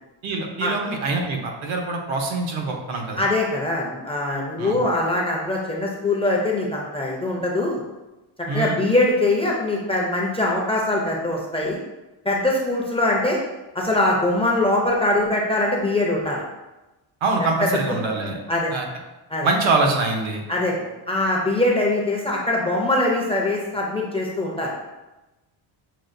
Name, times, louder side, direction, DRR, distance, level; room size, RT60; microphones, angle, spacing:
voice 1, 0.2-3.2 4.6-4.8 8.5-8.8 17.2-18.4 18.7-18.8 19.4-20.4, right 3 dB, 85° right, 2 dB, 0.9 m, -24 dB
voice 2, 3.2-7.8 8.5-11.8 12.2-13.4 13.7-16.4 17.6-17.7 18.5-18.7 19.3-19.5 20.5-20.7 21.1-24.7, left 2 dB, 15° left, -3 dB, 0.4 m, -22 dB
6.2 x 2.2 x 2.5 m, 1.0 s
cardioid pair, 140°, 46 cm